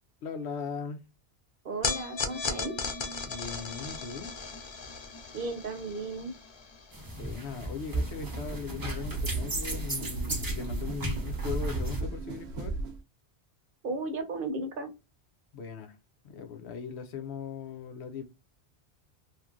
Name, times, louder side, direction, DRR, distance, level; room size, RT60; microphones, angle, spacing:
voice 1, 0.2-1.0 3.3-4.3 7.1-12.7 15.5-16.0 16.2-18.2, left 5 dB, 90° left, 0.9 m, -39 dB
voice 2, 1.6-2.7 5.3-6.3 13.8-14.9, right 3 dB, 60° right, 0.9 m, -35 dB
sound 1, 1.8-8.2, left 4 dB, 50° left, 0.3 m, -37 dB
sound 2, 6.9-12.0, right 1 dB, 25° right, 0.5 m, -36 dB
sound 3, 8.0-13.0, right 2 dB, 85° right, 0.9 m, -35 dB
2.9 x 2.6 x 2.3 m
omnidirectional pair, 1.1 m